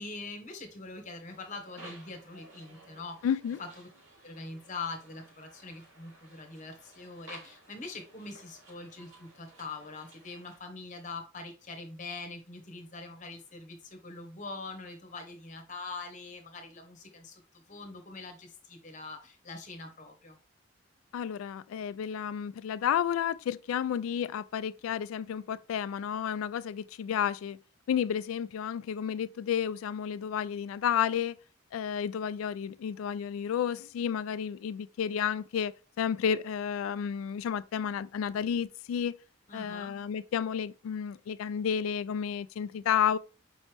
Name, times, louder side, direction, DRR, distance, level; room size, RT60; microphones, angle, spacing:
voice 1, 0.0-3.2 3.6-3.9 4.2-20.4 39.5-40.0, left 3 dB, 35° left, 1.0 m, -43 dB
sound 1, 1.2-10.6, right 1 dB, 80° right, 2.4 m, -55 dB
voice 2, 3.2-3.6 21.1-27.6 27.9-31.4 31.7-39.1 39.5-43.2, left 8 dB, 85° left, 0.3 m, -31 dB
5.4 x 3.0 x 3.3 m
head